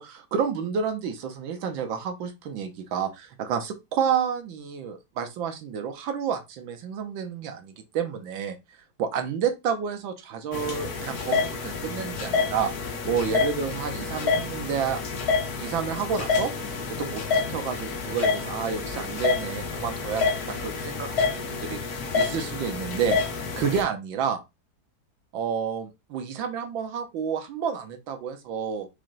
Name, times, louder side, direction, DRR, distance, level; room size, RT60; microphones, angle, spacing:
voice 1, 0.0-8.6 9.0-12.7 13.1-15.0 15.6-16.5 16.9-21.8 22.1-23.2 23.6-24.4 25.3-28.9, right 7 dB, 80° right, 1.6 m, -30 dB
sound 1, 10.5-23.8, left 4 dB, 60° left, 1.4 m, -28 dB
4.3 x 3.2 x 3.8 m
omnidirectional pair, 2.1 m